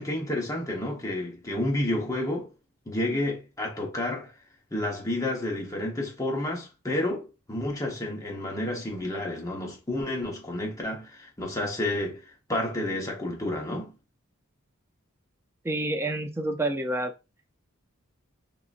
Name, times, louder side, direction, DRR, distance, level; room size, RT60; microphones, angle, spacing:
voice 1, 0.0-2.5 2.9-4.3 4.7-12.2 12.5-13.9, left 1 dB, 15° left, 1.0 m, -30 dB
voice 2, 15.6-17.1, right 1 dB, 10° right, 0.4 m, -28 dB
3.8 x 2.9 x 2.5 m
head